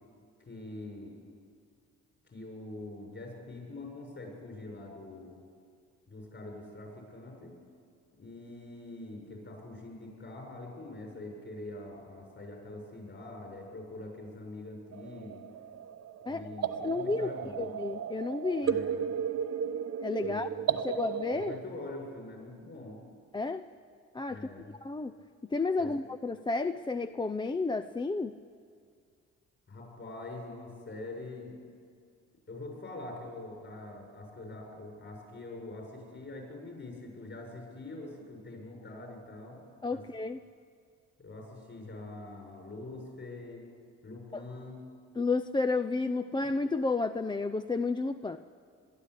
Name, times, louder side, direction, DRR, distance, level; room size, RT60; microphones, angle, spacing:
voice 1, 0.5-1.2 2.3-5.4 6.1-7.5 8.2-15.4 16.3-17.7 18.6-19.1 20.2-20.8 21.3-23.0 24.3-24.7 25.8-25.9 29.7-31.5 32.5-39.6 39.9-40.0 41.2-43.7 44.0-44.8, left 2 dB, 40° left, 1 dB, 7.3 m, -44 dB
sound 1, 14.9-21.6, right 8 dB, 55° right, 1.0 m, -35 dB
voice 2, 16.8-18.8 20.0-20.5 20.8-21.5 23.3-23.6 24.1-24.5 24.8-25.1 25.5-28.4 39.8-40.4 44.3-44.4 45.2-48.4, left 3 dB, 15° left, 9 dB, 0.5 m, -31 dB
22.5 x 12.0 x 10.0 m, 2.2 s
cardioid pair, 90°, 30 cm